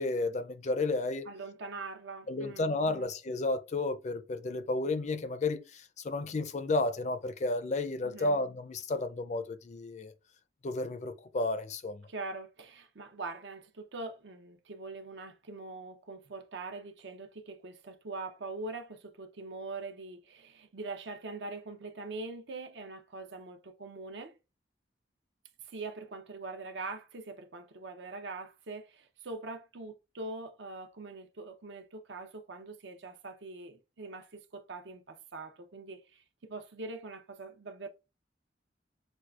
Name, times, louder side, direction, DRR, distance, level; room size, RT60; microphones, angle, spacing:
voice 1, 0.0-1.3 2.3-10.1 10.6-12.1, left 2 dB, 40° left, 0.4 m, -32 dB
voice 2, 1.3-3.1 8.1-8.4 12.1-24.3 25.7-37.9, right 3 dB, 70° right, 0.6 m, -43 dB
6.1 x 2.4 x 2.3 m
head